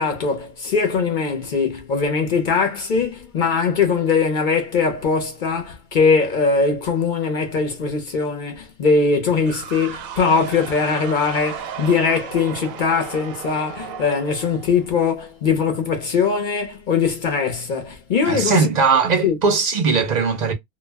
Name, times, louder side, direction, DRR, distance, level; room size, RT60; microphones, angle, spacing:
voice 1, 0.0-18.7 19.2-19.4, left 5 dB, 55° left, 0.6 m, -21 dB
sound 1, 9.5-15.2, right 8 dB, 90° right, 1.0 m, -35 dB
voice 2, 18.3-20.5, right 5 dB, 55° right, 0.5 m, -19 dB
2.2 x 2.1 x 3.2 m
omnidirectional pair, 1.4 m